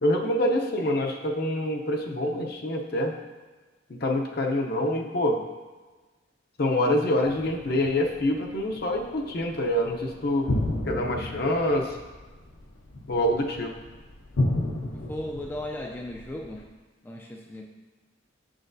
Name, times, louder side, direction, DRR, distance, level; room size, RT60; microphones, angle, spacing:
voice 1, 0.0-3.1 3.9-5.4 6.6-10.5 10.9-12.0 13.1-13.7, left 1 dB, 55° left, 2 dB, 0.7 m, -26 dB
sound 1, 7.2-16.6, left 1 dB, 80° left, 0.8 m, -33 dB
voice 2, 14.9-16.7 17.0-17.6, left 1 dB, 10° left, -1 dB, 0.3 m, -36 dB
6.8 x 6.3 x 2.6 m, 1.3 s
head